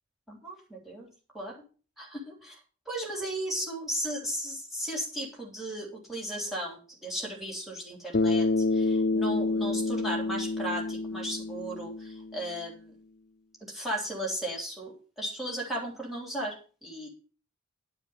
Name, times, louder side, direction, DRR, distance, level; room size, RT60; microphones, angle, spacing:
voice 1, 0.3-1.1 1.3-1.6 2.0-2.6 2.9-13.0 13.6-17.1, right 1 dB, ahead, -4 dB, 3.1 m, -36 dB
Bass guitar, 8.1-12.5, left 3 dB, 45° left, 0.6 m, -28 dB
11.5 x 5.1 x 7.0 m, 0.37 s
head